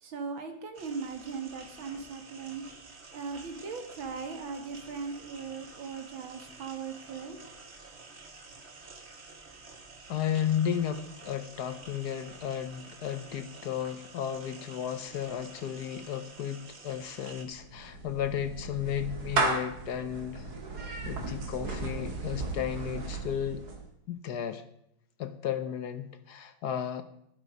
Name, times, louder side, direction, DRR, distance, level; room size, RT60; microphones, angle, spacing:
voice 1, 0.0-2.7 3.1-7.4, right 5 dB, 85° right, 7 dB, 2.3 m, -39 dB
sound 1, 0.7-17.4, right 3 dB, 35° right, 1.6 m, -50 dB
voice 2, 10.1-20.5 20.8-23.6 24.1-24.6 25.2-27.0, left 9 dB, 65° left, 11 dB, 1.2 m, -34 dB
Clapping / Meow, 17.5-23.9, right 3 dB, 55° right, 2.1 m, -35 dB
11.5 x 11.0 x 5.1 m, 0.73 s
omnidirectional pair, 2.1 m